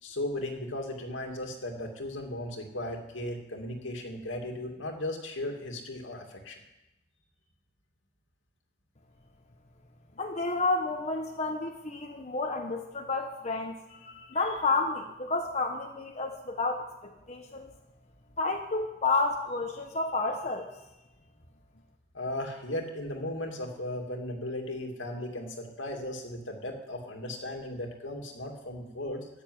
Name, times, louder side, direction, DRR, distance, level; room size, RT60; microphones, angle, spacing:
voice 1, 0.0-6.6 22.1-29.3, left 1 dB, 85° left, 2 dB, 2.5 m, -36 dB
voice 2, 10.2-17.7 18.4-20.7, left 3 dB, 35° left, 1 dB, 1.1 m, -31 dB
13.0 x 9.8 x 8.1 m, 0.97 s
head